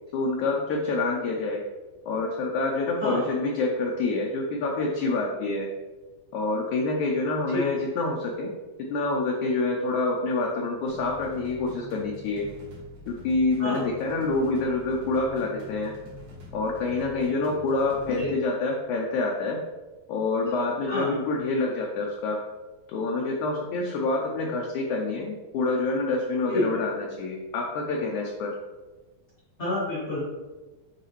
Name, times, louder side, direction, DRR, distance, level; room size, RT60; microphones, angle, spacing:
voice 1, 0.1-1.6 2.1-5.7 6.3-8.5 8.9-12.5 13.1-15.9 16.5-19.6 20.1-22.4 22.9-28.5, left 3 dB, 75° left, -1 dB, 1.8 m, -27 dB
sound 1, 10.9-18.3, equal, 65° right, 2.9 m, -45 dB
voice 2, 20.9-21.2 26.5-26.8 29.6-30.2, left 1 dB, 55° left, -8 dB, 0.7 m, -28 dB
8.1 x 4.1 x 3.1 m, 1.2 s
omnidirectional pair, 4.1 m